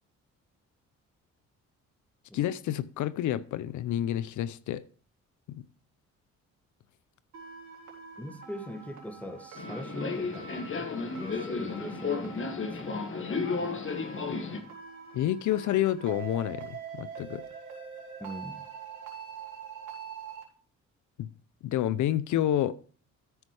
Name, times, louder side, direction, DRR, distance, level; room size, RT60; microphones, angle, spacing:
voice 1, 2.3-4.8 5.5-5.7 15.1-17.4 21.2-21.3 21.6-22.7, left 12 dB, 75° left, 0.6 m, -29 dB
sound 1, 7.3-20.4, right 6 dB, 75° right, 3.7 m, -45 dB
voice 2, 8.2-13.1 18.2-18.6, equal, 5° left, 1.8 m, -41 dB
Subway metro underground, 9.6-14.6, left 4 dB, 45° left, 1.9 m, -33 dB
13.5 x 5.4 x 4.8 m
cardioid pair, 90°, 30 cm